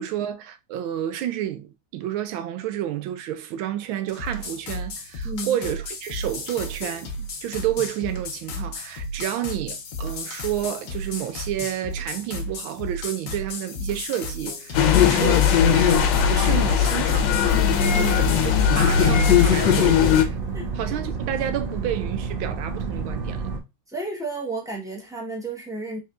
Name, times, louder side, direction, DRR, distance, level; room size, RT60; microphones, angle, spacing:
voice 1, 0.0-7.1 7.4-15.4 15.7-17.6 18.1-20.4 20.7-23.5, right 11 dB, 85° right, 1.5 m, -30 dB
sound 1, 4.1-19.9, left 1 dB, 55° left, 1.0 m, -34 dB
voice 2, 5.2-5.6 14.9-15.2 17.9-18.3 20.5-20.7 23.9-26.0, right 2 dB, 5° right, 0.6 m, -32 dB
sound 2, 14.7-20.2, left 8 dB, 75° left, 1.3 m, -18 dB
sound 3, 18.1-23.6, right 4 dB, 70° right, 0.5 m, -30 dB
4.3 x 3.8 x 2.4 m
omnidirectional pair, 2.2 m